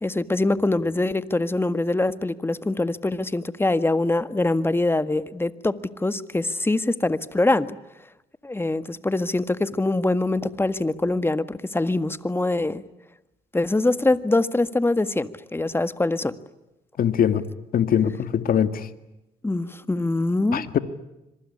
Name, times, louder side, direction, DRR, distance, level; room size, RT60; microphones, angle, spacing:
voice 1, 0.0-7.8 8.4-12.8 13.5-16.3 19.4-20.8, left 2 dB, 15° left, 12 dB, 1.7 m, -24 dB
voice 2, 17.0-17.4 17.7-18.9 20.5-20.8, left 9 dB, 60° left, 11 dB, 2.0 m, -22 dB
26.0 x 23.5 x 9.8 m, 0.94 s
supercardioid pair, 75°, 16 cm